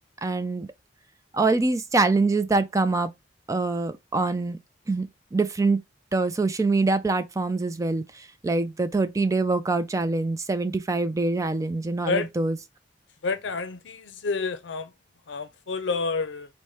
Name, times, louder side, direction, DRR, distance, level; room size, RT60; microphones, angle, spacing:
voice 1, 0.2-0.7 1.3-3.1 3.5-4.6 4.9-5.8 6.1-12.6, right 3 dB, 15° right, 0.3 m, -24 dB
voice 2, 13.2-14.9 15.3-16.5, left 4 dB, 70° left, 0.5 m, -29 dB
5.5 x 2.1 x 3.1 m
head